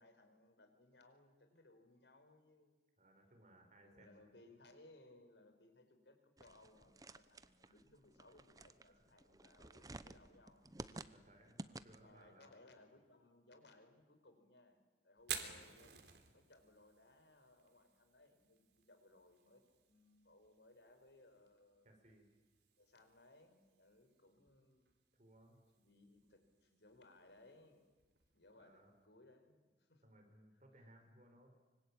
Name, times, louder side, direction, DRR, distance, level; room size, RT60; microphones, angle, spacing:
voice 1, 0.0-2.8 3.8-10.6 11.9-14.8 15.0-16.0 16.3-22.0 22.8-24.8 25.8-27.9 28.3-30.0, left 2 dB, 80° left, 7 dB, 4.8 m, -65 dB
voice 2, 3.0-4.2 7.6-7.7 8.9-9.1 10.9-12.5 21.8-22.3 25.1-25.6 28.6-28.9 30.0-31.7, right 1 dB, 40° right, 4 dB, 5.6 m, -65 dB
sound 1, 6.4-12.2, right 2 dB, 20° right, 0.9 m, -53 dB
Fire, 15.2-29.0, right 8 dB, 75° right, 3.5 m, -55 dB
25.5 x 24.5 x 8.9 m, 1.4 s
head